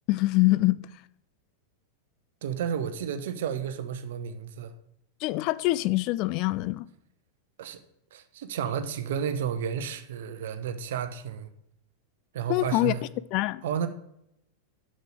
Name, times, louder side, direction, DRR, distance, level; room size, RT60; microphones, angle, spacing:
voice 1, 0.1-0.8 5.2-6.9 12.5-12.9 13.3-13.6, left 19 dB, 40° left, 0.3 m, -24 dB
voice 2, 2.4-4.7 7.6-7.8 8.1-11.5 12.3-13.1 13.6-13.9, right 8 dB, 55° right, 0.8 m, -32 dB
6.6 x 6.5 x 6.0 m
figure-of-eight pair, 90°, 0 cm